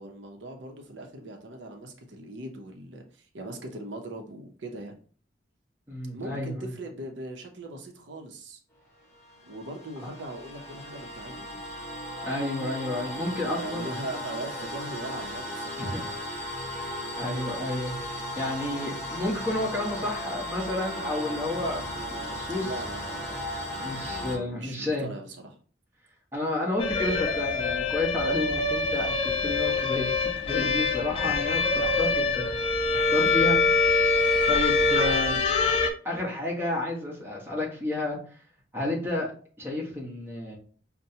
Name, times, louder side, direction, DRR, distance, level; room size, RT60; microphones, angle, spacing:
voice 1, 0.0-5.0 6.1-8.6 9.5-11.6 13.4-16.1 22.6-25.6 31.2-31.3 31.8-31.9 33.2-33.4, right 1 dB, 85° right, 3 dB, 0.7 m, -40 dB
voice 2, 5.9-6.7 12.2-14.2 15.8-16.0 17.2-22.7 23.8-25.1 26.3-30.1 30.4-33.6 34.5-35.4 36.0-38.2 38.7-39.3 39.6-40.6, left 2 dB, 15° right, -3 dB, 1.0 m, -31 dB
sound 1, 9.1-24.4, equal, 15° left, 1.0 m, -36 dB
sound 2, 26.8-35.9, left 3 dB, 30° left, 0.4 m, -24 dB
5.4 x 2.2 x 2.8 m, 0.43 s
head